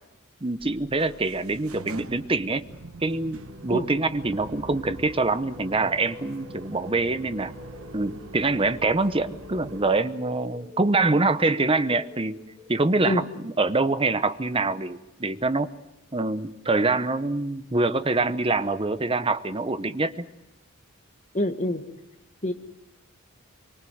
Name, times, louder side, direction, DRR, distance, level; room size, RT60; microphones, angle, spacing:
voice 1, 0.4-2.6 3.0-7.5 7.9-12.4 12.7-15.7 16.1-20.3, right 3 dB, 25° right, 12 dB, 0.9 m, -25 dB
sound 1, 0.6-10.0, right 2 dB, 75° right, 1.1 m, -44 dB
sound 2, 3.4-13.1, left 3 dB, 5° right, 1.4 m, -48 dB
voice 2, 21.3-21.8 22.4-22.5, left 1 dB, 35° left, 7 dB, 1.7 m, -25 dB
24.5 x 24.0 x 7.9 m, 0.97 s
head